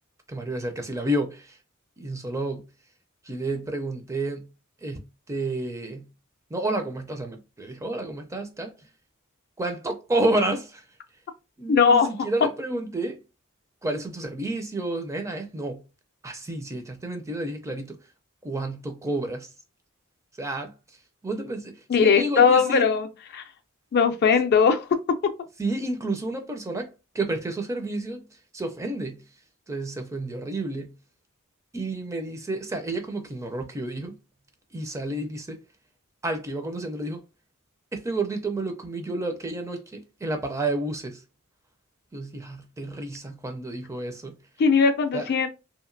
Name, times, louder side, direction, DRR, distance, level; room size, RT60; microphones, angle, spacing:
voice 1, 0.3-1.6 2.0-2.7 3.2-4.5 4.8-6.1 6.5-8.7 9.6-10.8 11.6-13.2 13.8-15.8 16.2-18.0 18.4-19.5 20.4-20.7 21.2-22.9 25.6-28.2 28.5-29.2 29.7-31.0 31.7-34.2 34.7-35.6 36.2-37.2 37.9-41.2 42.1-44.4 45.1-45.3, right 2 dB, 15° right, 0.4 m, -30 dB
voice 2, 11.7-12.1 21.9-23.1 23.3-23.4 23.9-24.8 44.6-45.5, left 6 dB, 50° left, 0.4 m, -19 dB
2.8 x 2.5 x 2.5 m
head